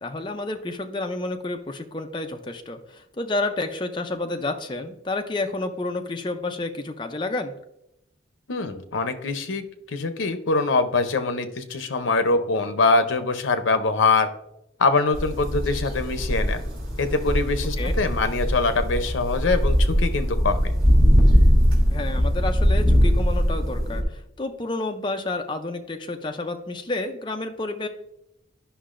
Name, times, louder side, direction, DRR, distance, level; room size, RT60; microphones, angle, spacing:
voice 1, 0.0-7.5 17.8-17.9 21.9-27.9, left 2 dB, 25° left, 5 dB, 0.5 m, -30 dB
voice 2, 8.5-14.3 14.8-16.6 17.0-20.7, left 3 dB, 85° left, 9 dB, 0.7 m, -23 dB
sound 1, 15.1-24.0, equal, 50° right, 2.3 m, -21 dB
10.0 x 5.6 x 2.5 m, 0.82 s
head